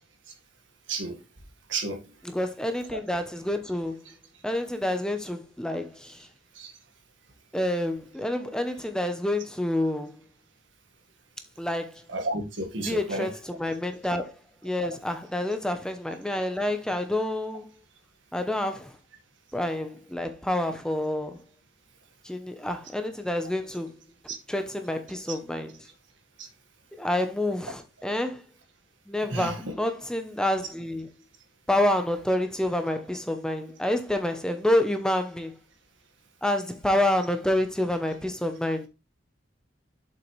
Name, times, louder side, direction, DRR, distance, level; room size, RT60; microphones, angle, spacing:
voice 1, 1.7-2.0 6.6-6.7 12.1-13.3 24.3-24.4 26.4-26.5 29.3-29.6, right 2 dB, 75° right, 1.7 m, -31 dB
voice 2, 2.2-4.0 4.4-6.3 7.5-10.1 11.6-12.0 12.8-14.3 14.6-17.7 18.3-19.0 19.5-21.4 22.2-24.0 24.5-25.9 26.9-28.4 29.1-31.1 31.7-35.6 36.4-38.9, left 1 dB, 5° left, 0.7 m, -28 dB
7.3 x 5.6 x 3.2 m
head